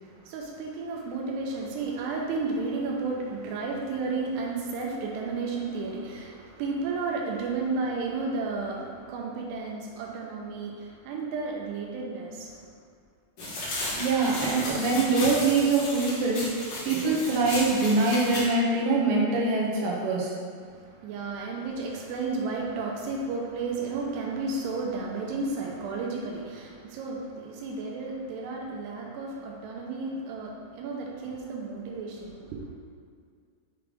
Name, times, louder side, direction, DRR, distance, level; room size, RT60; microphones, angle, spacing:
voice 1, 0.0-12.6 20.7-32.6, right 3 dB, 85° right, -1 dB, 2.8 m, -33 dB
sound 1, 13.4-18.4, left 1 dB, 55° left, 1.7 m, -34 dB
voice 2, 14.0-20.3, right 3 dB, 65° right, -4 dB, 2.5 m, -24 dB
7.1 x 3.4 x 5.1 m, 2.1 s
omnidirectional pair, 4.7 m